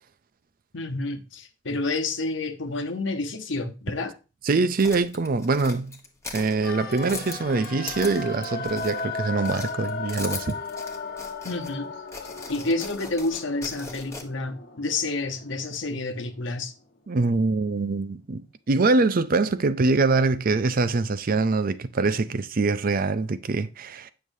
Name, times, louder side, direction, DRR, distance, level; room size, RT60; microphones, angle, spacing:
voice 1, 0.7-4.1 11.4-11.9 12.5-16.7, left 2 dB, 85° left, 1.1 m, -29 dB
voice 2, 4.4-6.0 6.3-10.6 17.1-18.4 18.7-24.1, right 3 dB, 50° right, 0.5 m, -24 dB
sound 1, 4.8-9.2 9.4-11.7 12.1-14.2, left 3 dB, 15° left, 1.1 m, -39 dB
sound 2, 6.6-16.6 16.8-16.9, left 4 dB, 55° left, 1.1 m, -36 dB
9.0 x 6.5 x 2.7 m
head